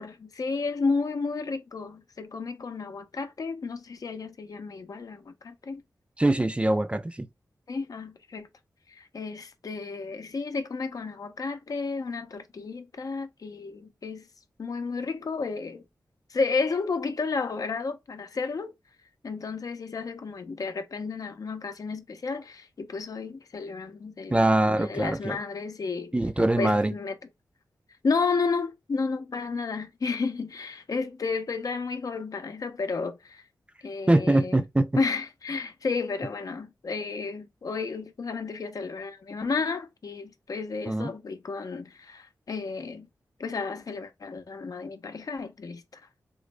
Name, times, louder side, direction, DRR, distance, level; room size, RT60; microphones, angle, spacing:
voice 1, 0.0-5.8 7.7-8.5 8.9-14.3 14.6-15.8 16.3-18.7 19.2-24.4 24.7-26.1 26.6-27.1 28.0-33.4 33.8-34.6 35.0-43.1 43.4-45.8, left 4 dB, 60° left, 0.6 m, -32 dB
voice 2, 6.2-7.3 24.3-25.4 26.1-26.9 34.1-34.9 40.9-41.1, right 1 dB, 15° right, 0.3 m, -23 dB
3.8 x 2.0 x 3.2 m
cardioid pair, 65°, 7 cm